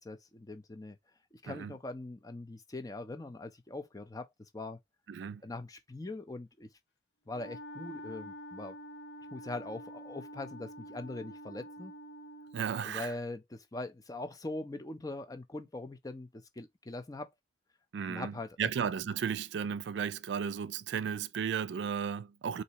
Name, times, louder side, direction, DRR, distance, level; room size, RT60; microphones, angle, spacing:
voice 1, 0.0-1.0 1.3-4.3 4.5-4.8 5.4-6.7 7.3-8.8 9.3-11.9 12.8-17.3 18.1-18.6, left 2 dB, 20° left, 0.5 m, -42 dB
voice 2, 5.1-5.4 12.5-13.1 17.9-22.6, right 7 dB, 80° right, 0.3 m, -34 dB
Wind instrument woodwind instrument, 7.3-12.7, equal, 75° left, 0.6 m, -47 dB
4.0 x 2.7 x 2.8 m
head